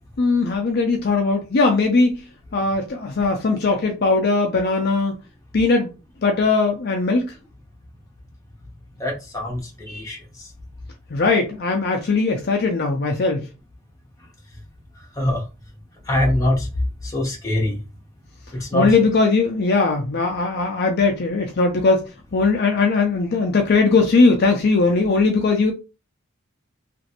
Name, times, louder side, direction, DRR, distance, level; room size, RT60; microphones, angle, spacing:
voice 1, 0.2-2.2 2.5-5.1 5.5-5.9 6.2-7.3 11.1-13.4 18.7-22.0 22.3-25.7, left 3 dB, 45° left, 0.5 m, -19 dB
voice 2, 9.0-9.6 9.9-10.2 15.2-15.4 16.1-16.6 17.1-17.8 18.7-18.9, left 1 dB, 15° left, 1.0 m, -22 dB
3.0 x 2.5 x 2.8 m
head